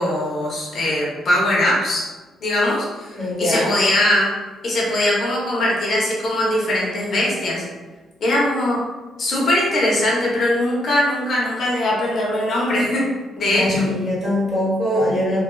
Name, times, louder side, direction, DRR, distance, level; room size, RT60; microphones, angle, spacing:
voice 1, 0.0-2.0 2.4-4.3 4.6-7.6 8.2-8.8 9.2-13.0 13.4-13.9, left 1 dB, 50° left, -4 dB, 0.8 m, -20 dB
voice 2, 3.2-3.7 13.4-15.4, left 1 dB, 5° left, -8 dB, 1.4 m, -22 dB
2.5 x 2.3 x 2.3 m, 1.2 s
cardioid pair, 90°, 0 cm